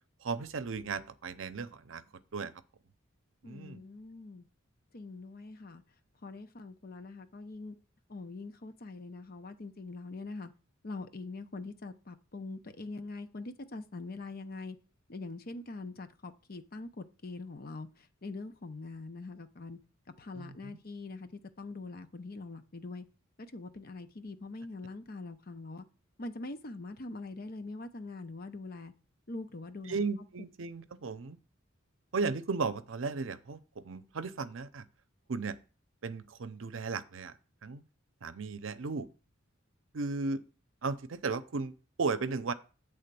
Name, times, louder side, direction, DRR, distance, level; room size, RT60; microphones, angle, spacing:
voice 1, 0.2-2.0 2.3-2.5 3.4-3.8 20.4-20.8 29.9-31.4 32.1-34.8 35.3-35.6 36.0-37.3 37.6-37.8 38.2-39.1 39.9-40.4 40.8-41.7 42.0-42.5, right 4 dB, 70° right, 0.6 m, -35 dB
voice 2, 3.4-4.5 4.9-5.8 6.2-7.8 8.1-10.5 10.8-14.8 15.1-19.8 20.2-23.1 23.4-25.9 26.2-28.9 29.3-30.0, left 3 dB, 50° left, 0.8 m, -43 dB
8.8 x 3.6 x 6.8 m
head